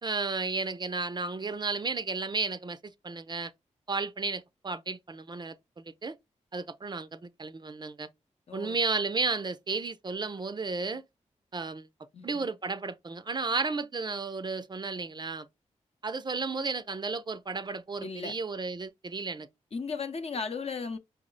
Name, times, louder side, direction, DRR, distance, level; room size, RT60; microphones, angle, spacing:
voice 1, 0.0-3.5 3.9-6.2 6.5-8.1 8.5-11.0 11.5-11.9 12.2-15.5 16.0-19.5, right 4 dB, 35° right, 0.4 m, -33 dB
voice 2, 8.5-8.8 12.1-12.5 18.0-18.3 19.7-21.0, left 5 dB, 50° left, 0.7 m, -36 dB
5.4 x 2.0 x 3.8 m
cardioid pair, 65°, 13 cm